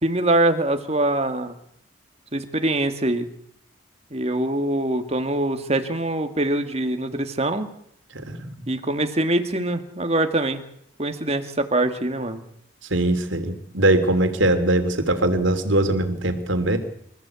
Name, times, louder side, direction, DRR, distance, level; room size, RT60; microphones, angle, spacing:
voice 1, 0.0-1.5 2.3-3.3 4.1-7.7 8.7-10.6 11.0-12.4, right 1 dB, 30° right, 7 dB, 2.0 m, -23 dB
voice 2, 8.1-8.7 12.9-16.8, right 1 dB, 65° right, 7 dB, 3.1 m, -21 dB
26.5 x 14.5 x 8.3 m, 0.71 s
head